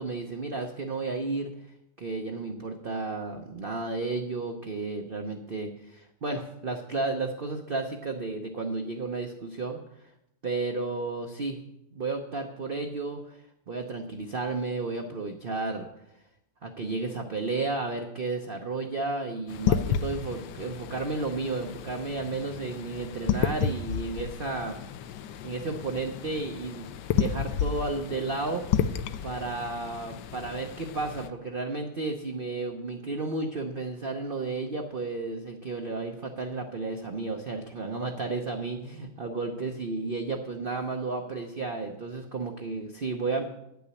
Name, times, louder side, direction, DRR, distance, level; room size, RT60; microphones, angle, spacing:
voice 1, 0.0-1.5 2.0-9.8 10.4-11.6 11.9-13.4 13.7-15.9 16.6-24.8 25.4-26.9 27.2-28.7 29.2-43.5, right 3 dB, 50° right, 3 dB, 0.6 m, -32 dB
sound 1, 19.5-31.3, left 8 dB, 75° left, 1.1 m, -32 dB
9.7 x 6.1 x 8.3 m, 0.84 s
omnidirectional pair, 2.1 m